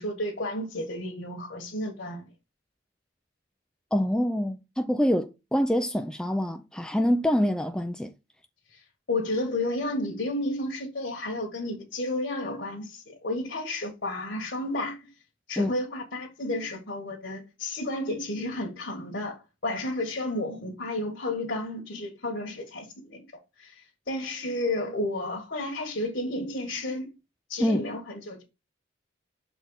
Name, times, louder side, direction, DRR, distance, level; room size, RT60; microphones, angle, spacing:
voice 1, 0.0-2.3 8.7-8.8 9.1-15.1 15.5-23.3 23.6-27.1 27.5-28.4, left 1 dB, 65° left, 1.6 m, -32 dB
voice 2, 3.9-8.1 15.6-15.7 27.6-27.8, equal, 5° left, 0.3 m, -25 dB
6.9 x 4.2 x 4.0 m
head